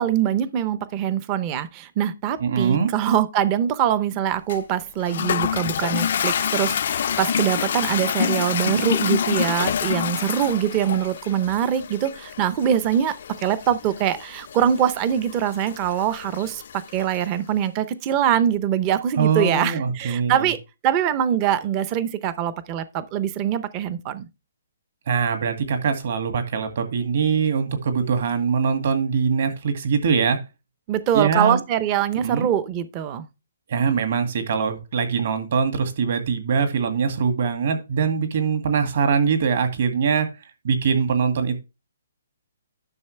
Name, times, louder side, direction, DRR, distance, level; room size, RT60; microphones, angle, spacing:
voice 1, 0.0-20.6 20.8-24.3 30.9-33.3, right 10 dB, 20° right, 0.6 m, -23 dB
voice 2, 2.4-2.9 19.2-20.5 25.1-30.4 31.1-31.6 32.2-32.5 33.7-40.3 40.6-41.6, right 6 dB, 50° right, 2.1 m, -22 dB
Toilet flush, 4.5-17.3, left 8 dB, 50° left, 0.4 m, -27 dB
10.5 x 6.4 x 3.2 m
hypercardioid pair, 170°, 0 cm